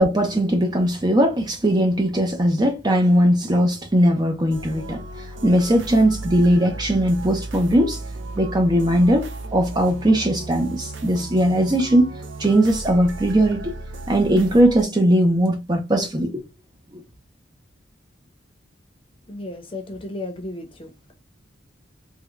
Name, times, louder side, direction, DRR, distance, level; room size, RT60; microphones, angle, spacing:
voice 1, 0.0-5.0 5.4-8.0 8.4-12.1 12.4-13.7 14.1-16.4 16.9-17.0, right 1 dB, 20° right, 0.6 m, -19 dB
sound 1, 4.5-14.8, right 2 dB, 75° right, 0.5 m, -35 dB
voice 2, 19.3-21.1, left 2 dB, 30° left, 0.8 m, -34 dB
3.5 x 2.3 x 3.1 m
head